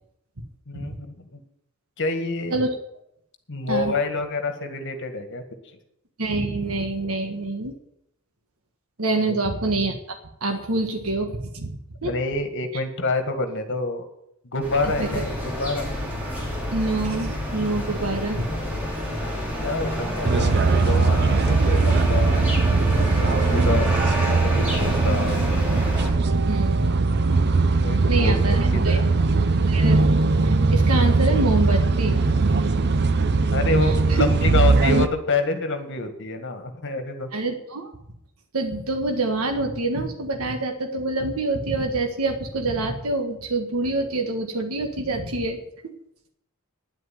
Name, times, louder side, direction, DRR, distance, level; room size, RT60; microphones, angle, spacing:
voice 1, 0.7-1.4 2.0-2.7 3.5-5.4 12.0-14.1 14.5-15.9 19.6-22.5 23.0-24.0 24.3-25.4 27.8-29.0 33.5-37.3, left 3 dB, 55° left, 7 dB, 1.8 m, -27 dB
voice 2, 6.2-7.7 9.0-11.7 12.0-12.1 15.0-15.2 16.7-18.5 26.5-27.1 28.1-29.0 29.6-30.0 30.3-32.2 33.8-34.3 37.3-37.9 38.5-45.9, right 2 dB, 70° right, 4 dB, 1.5 m, -26 dB
sound 1, 14.6-26.1, equal, 5° right, 4.1 m, -28 dB
sound 2, 20.2-35.1, right 3 dB, 50° right, 0.7 m, -20 dB
10.0 x 8.1 x 9.3 m, 0.78 s
head